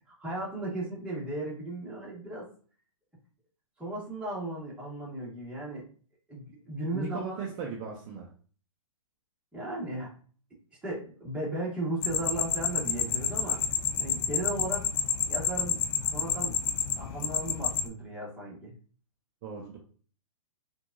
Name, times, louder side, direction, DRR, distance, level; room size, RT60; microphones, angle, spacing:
voice 1, 0.1-2.5 3.8-5.8 6.3-7.4 9.5-10.1 10.8-13.7 14.0-14.9 15.3-15.8 16.1-16.6 17.0-18.7, right 1 dB, 5° right, -6 dB, 1.6 m, -36 dB
voice 2, 6.9-8.3 19.4-19.8, right 5 dB, 35° right, -1 dB, 0.7 m, -37 dB
sound 1, 12.0-17.9, left 8 dB, 40° left, 0.5 m, -29 dB
4.4 x 2.6 x 2.6 m, 0.42 s
hypercardioid pair, 120°, 18 cm